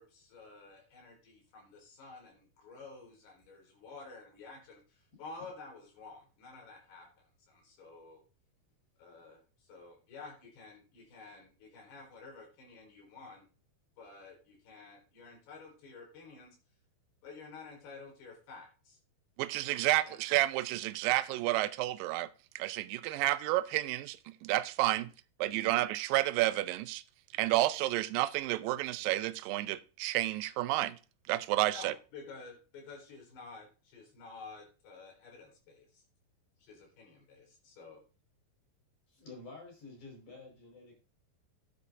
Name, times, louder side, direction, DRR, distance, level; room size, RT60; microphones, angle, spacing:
voice 1, 0.0-8.2 9.0-13.5 14.0-16.6 17.2-19.0 20.0-20.2 31.6-36.0 36.6-38.0, left 4 dB, 80° left, 6.1 m, -51 dB
voice 2, 19.4-22.3 22.6-25.1 25.4-27.0 27.3-31.0 31.3-31.9, right 17 dB, 80° right, 2.1 m, -30 dB
voice 3, 25.4-25.8 27.3-27.5 36.6-36.8 39.1-40.9, left 3 dB, 50° left, 6.5 m, -51 dB
13.0 x 9.5 x 2.7 m
omnidirectional pair, 4.6 m